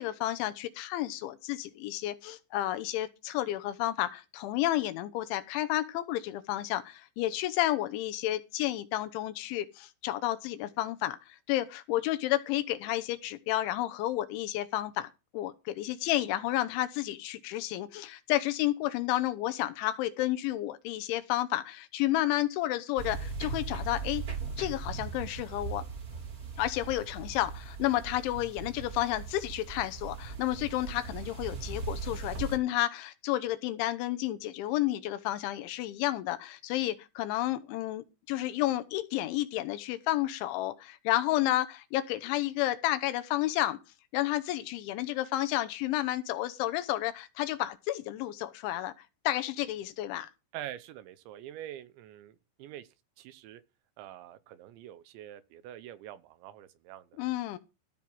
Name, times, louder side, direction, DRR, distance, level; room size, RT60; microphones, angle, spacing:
voice 1, 0.0-24.2 24.6-25.8 26.6-43.8 44.1-48.9 49.2-50.3 57.2-57.6, left 15 dB, 80° left, 3.2 m, -31 dB
sound 1, 23.0-32.6, right 4 dB, 35° right, 1.4 m, -39 dB
voice 2, 50.5-52.9 53.2-53.6 54.0-57.2, right 12 dB, 80° right, 3.0 m, -45 dB
14.5 x 6.0 x 6.2 m
omnidirectional pair, 5.5 m